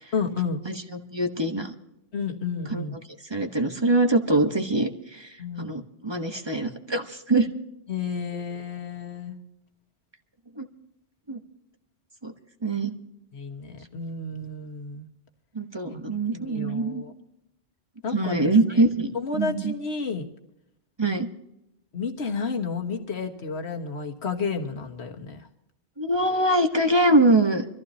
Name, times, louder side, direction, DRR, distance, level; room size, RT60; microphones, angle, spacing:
voice 1, 0.1-0.6 2.1-3.0 5.4-5.8 7.9-9.3 13.3-15.1 15.9-17.1 18.0-18.3 18.7-18.8 19.1-20.2 21.9-25.5, left 5 dB, 75° left, 4 dB, 1.7 m, -31 dB
voice 2, 0.6-1.7 2.7-2.8 3.2-7.5 10.6-10.7 11.3-11.4 12.2-12.3 12.6-12.9 15.5-17.0 18.1-19.7 21.0-21.3 26.0-27.7, right 2 dB, 25° right, 5 dB, 1.1 m, -24 dB
25.0 x 14.5 x 2.8 m, 0.87 s
omnidirectional pair, 1.1 m